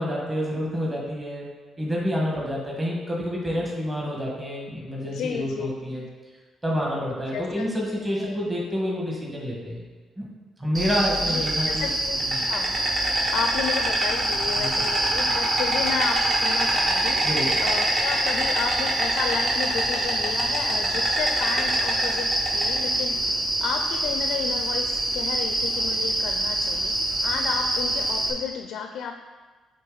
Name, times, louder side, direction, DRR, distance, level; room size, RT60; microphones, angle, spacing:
voice 1, 0.0-1.5 1.8-6.0 6.6-9.8 10.2-10.3 10.6-11.9 12.2-12.5 14.5-14.8 17.2-17.5, equal, 15° right, -4 dB, 1.5 m, -28 dB
voice 2, 5.0-5.7 7.3-8.4 11.3-12.2 12.5-12.8 13.3-17.2 17.6-23.3 23.6-26.9 27.2-29.2, left 7 dB, 80° left, 5 dB, 0.4 m, -32 dB
Insect, 10.7-28.3, right 1 dB, 45° right, 1.5 m, -24 dB
8.3 x 3.3 x 3.9 m, 1.3 s
cardioid pair, 90°, 0 cm